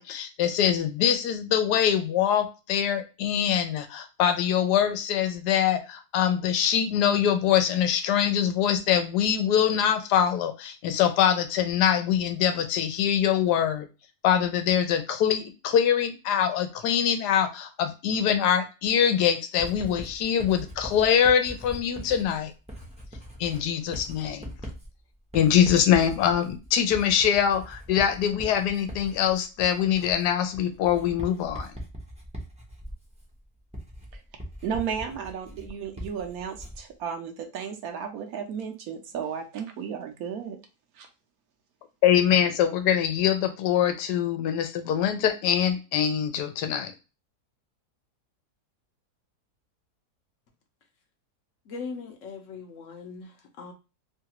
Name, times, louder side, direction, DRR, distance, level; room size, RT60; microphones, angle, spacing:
voice 1, 0.0-13.9 14.2-22.5 23.4-24.5 25.3-31.7 42.0-46.9, left 9 dB, 90° left, 7 dB, 1.2 m, -24 dB
Writing, 19.6-36.9, equal, 10° right, 0.4 m, -41 dB
voice 2, 34.6-40.6 41.0-41.1, right 7 dB, 70° right, 4 dB, 1.1 m, -34 dB
voice 3, 51.7-53.3 53.6-53.7, left 4 dB, 65° left, 3 dB, 0.8 m, -39 dB
3.2 x 2.4 x 2.8 m, 0.30 s
omnidirectional pair, 1.7 m